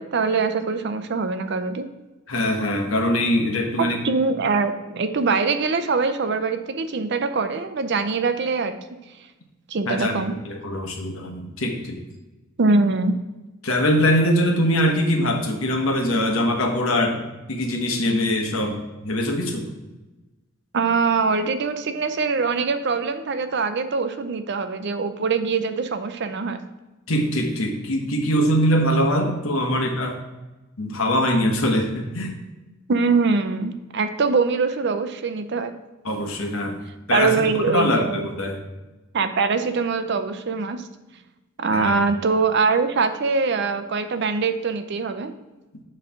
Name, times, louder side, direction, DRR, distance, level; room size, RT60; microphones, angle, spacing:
voice 1, 0.0-1.9 3.8-8.8 9.7-10.3 12.6-13.2 20.7-26.6 32.9-35.7 37.1-38.3 39.1-40.8 41.6-45.3, right 4 dB, 55° right, 9 dB, 0.5 m, -23 dB
voice 2, 2.3-4.0 9.9-12.0 13.6-19.7 27.1-30.2 30.8-32.4 36.0-36.8 37.1-38.6 41.7-42.0, equal, 80° left, 3 dB, 1.1 m, -22 dB
7.7 x 3.2 x 5.7 m, 1.1 s
head